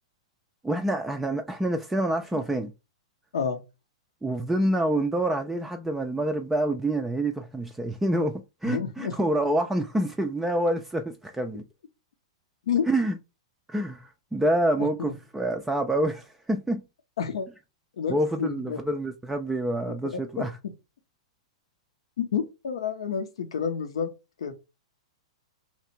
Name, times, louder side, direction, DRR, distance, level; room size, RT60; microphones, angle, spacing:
voice 1, 0.6-2.7 4.2-11.6 12.9-13.2 13.7-16.8 18.1-20.5, right 1 dB, 5° right, 0.4 m, -27 dB
voice 2, 8.6-9.2 12.7-12.9 15.0-15.1 17.2-17.5 18.0-18.8 22.2-24.1 24.4-24.5, left 7 dB, 65° left, 0.6 m, -29 dB
2.9 x 2.4 x 4.3 m
figure-of-eight pair, 105°, 3 cm